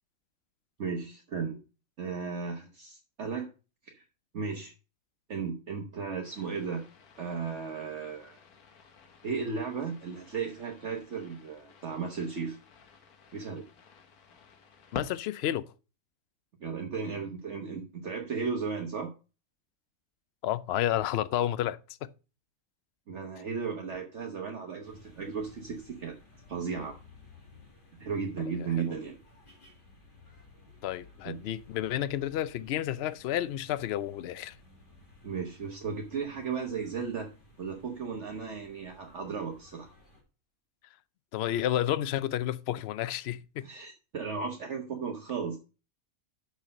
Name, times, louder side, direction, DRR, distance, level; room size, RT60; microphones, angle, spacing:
voice 1, 0.8-1.6 2.0-3.5 3.8-4.0 4.3-4.7 5.3-6.9 7.2-8.4 9.2-12.6 13.3-13.6 16.6-19.1 23.1-26.2 26.5-27.0 28.0-29.2 31.3-31.4 35.2-37.3 37.6-39.9 43.6-45.6, right 5 dB, 55° right, 1.3 m, -35 dB
sound 1, 6.2-15.2, left 5 dB, 90° left, 1.6 m, -50 dB
voice 2, 14.9-15.7 20.4-22.1 30.8-34.6 41.3-43.7, left 12 dB, 65° left, 0.6 m, -31 dB
sound 2, 24.8-40.2, left 2 dB, 35° left, 2.1 m, -57 dB
6.4 x 6.3 x 5.2 m
omnidirectional pair, 1.5 m